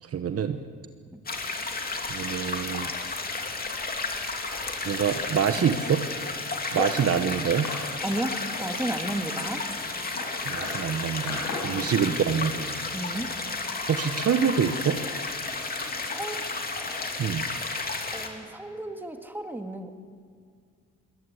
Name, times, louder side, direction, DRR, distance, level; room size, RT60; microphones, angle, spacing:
voice 1, 0.1-0.6 2.1-2.9 4.8-6.0 6.7-7.7 10.5-12.7 13.9-15.0 17.2-17.5, right 7 dB, 50° right, 9 dB, 1.2 m, -26 dB
sound 1, 1.3-18.3, left 3 dB, 30° left, 2.7 m, -32 dB
sound 2, 6.6-17.1, left 4 dB, 85° left, 5.8 m, -41 dB
voice 2, 8.0-9.6 11.7-12.0 12.9-13.3 16.0-16.5 18.1-19.9, right 1 dB, 5° right, 5 dB, 2.0 m, -33 dB
22.0 x 18.5 x 8.3 m, 2.1 s
cardioid pair, 90°, 30 cm